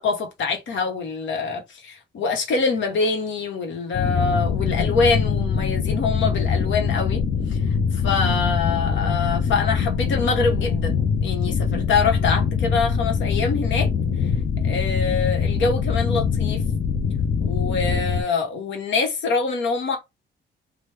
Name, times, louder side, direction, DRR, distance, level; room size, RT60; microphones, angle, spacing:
voice 1, 0.0-7.2 7.5-13.9 14.2-14.3 14.6-16.6 17.4-20.0, left 4 dB, 70° left, 1.1 m, -25 dB
sound 1, 3.9-18.2, left 6 dB, 45° left, 0.5 m, -23 dB
3.0 x 2.2 x 3.4 m
cardioid pair, 90°, 20 cm